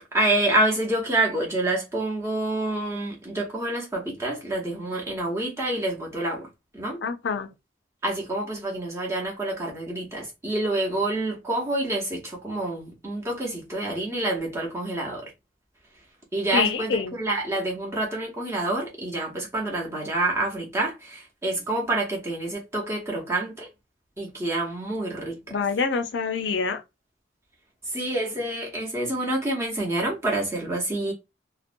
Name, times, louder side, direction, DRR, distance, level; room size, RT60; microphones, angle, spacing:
voice 1, 0.1-6.5 6.7-7.0 8.0-15.3 16.3-23.7 24.2-25.6 27.9-31.1, right 2 dB, 15° right, 0.7 m, -27 dB
voice 2, 7.0-7.5 16.5-17.1 25.5-26.8, left 5 dB, 70° left, 0.4 m, -26 dB
2.5 x 2.1 x 2.5 m
head